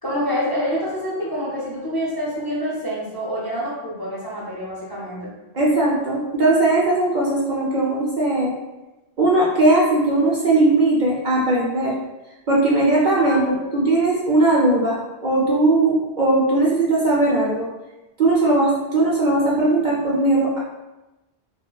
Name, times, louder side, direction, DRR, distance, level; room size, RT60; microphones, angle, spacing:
voice 1, 0.0-5.3 13.2-13.5, equal, 25° left, -7 dB, 0.6 m, -27 dB
voice 2, 5.5-8.5 9.2-12.0 12.5-17.7 18.2-20.6, right 2 dB, 55° right, -4 dB, 0.6 m, -19 dB
4.1 x 2.1 x 2.3 m, 1.1 s
omnidirectional pair, 1.1 m